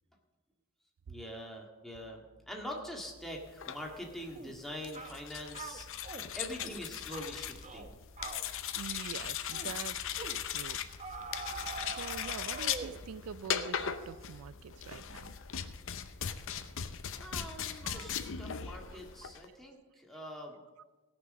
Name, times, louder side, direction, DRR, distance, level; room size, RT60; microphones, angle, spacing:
voice 1, 1.1-5.9 6.3-8.0 17.2-20.6, equal, ahead, -1 dB, 1.8 m, -44 dB
sound 1, 2.0-15.4, equal, 20° left, 2.2 m, -58 dB
sound 2, 3.5-19.5, left 8 dB, 65° left, 0.7 m, -39 dB
sound 3, 4.3-4.6 4.9-5.2 5.5-6.3 6.6-6.8 7.1-7.3 7.6-7.9 8.2-8.5 8.9-9.2 9.5-9.7 10.2-10.4 11.0-13.0, right 4 dB, 35° right, 0.9 m, -44 dB
voice 2, 8.7-10.8 11.8-15.3 17.8-18.2 19.2-19.3, right 7 dB, 80° right, 17 dB, 0.4 m, -45 dB
17.5 x 6.1 x 6.4 m, 1.2 s
head